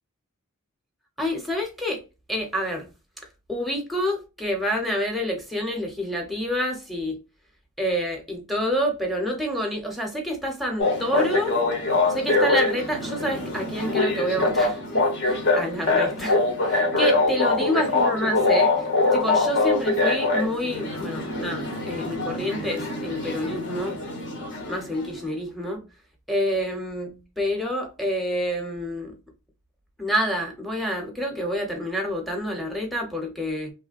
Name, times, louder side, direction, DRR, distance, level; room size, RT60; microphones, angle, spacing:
voice 1, 1.2-2.0 2.3-2.9 3.5-7.2 7.8-11.5 12.1-18.8 19.1-24.0 24.7-25.8 26.3-29.1 30.0-33.7, equal, ahead, 0.8 m, -28 dB
sound 1, 10.8-25.1, left 3 dB, 55° left, 1.0 m, -24 dB
3.1 x 2.1 x 2.4 m
head